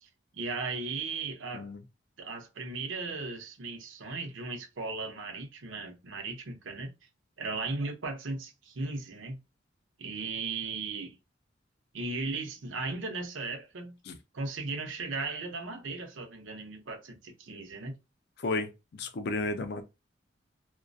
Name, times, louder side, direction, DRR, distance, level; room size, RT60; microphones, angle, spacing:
voice 1, 0.0-1.7 2.2-6.9 7.4-9.4 10.0-11.2 11.9-14.0 14.3-18.0, right 3 dB, 85° right, 0.7 m, -37 dB
voice 2, 18.4-19.8, left 3 dB, 55° left, 0.4 m, -33 dB
2.3 x 2.1 x 2.5 m
head